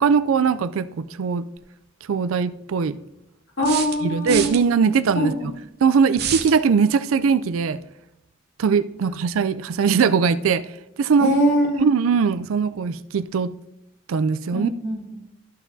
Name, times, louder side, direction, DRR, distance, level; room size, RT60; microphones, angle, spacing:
voice 1, 0.0-1.4 2.1-3.0 4.0-5.3 5.8-7.8 8.6-10.7 11.0-11.3 11.8-13.5 14.1-14.7, right 6 dB, 85° right, 0.4 m, -20 dB
sound 1, 1.6-1.7 3.6-4.6 6.1-6.6, right 9 dB, 50° right, 0.7 m, -28 dB
voice 2, 3.6-4.5 5.1-5.5 11.2-11.8 14.5-15.1, equal, 65° left, 2.9 m, -22 dB
13.5 x 6.0 x 2.7 m
head